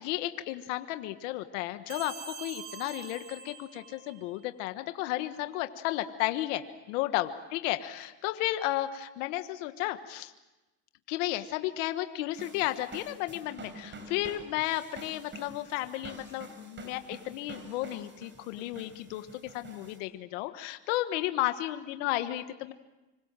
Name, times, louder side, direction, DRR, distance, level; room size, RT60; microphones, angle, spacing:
voice 1, 0.0-6.6 6.9-10.3 11.1-19.3 19.5-22.7, left 15 dB, 85° left, 9 dB, 1.4 m, -33 dB
sound 1, 1.9-4.5, right 6 dB, 70° right, 4.7 m, -45 dB
sound 2, 12.3-20.0, right 2 dB, 30° right, 5.8 m, -48 dB
26.0 x 26.0 x 7.5 m, 1.1 s
supercardioid pair, 100°, 36 cm